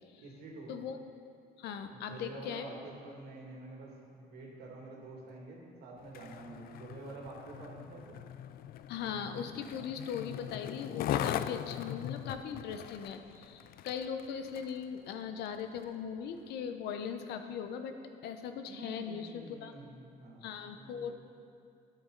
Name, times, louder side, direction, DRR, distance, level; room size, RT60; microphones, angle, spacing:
voice 1, 0.2-0.7 1.9-8.2 18.7-21.2, right 2 dB, 75° right, -2 dB, 2.5 m, -48 dB
voice 2, 1.6-2.6 8.9-17.9 18.2-19.7 20.4-21.2, left 7 dB, 80° left, 7 dB, 0.8 m, -39 dB
Skateboard, 6.0-14.8 15.5-15.6, left 11 dB, 60° left, 0.4 m, -40 dB
13.0 x 9.2 x 4.0 m, 2.6 s
cardioid pair, 110°, 17 cm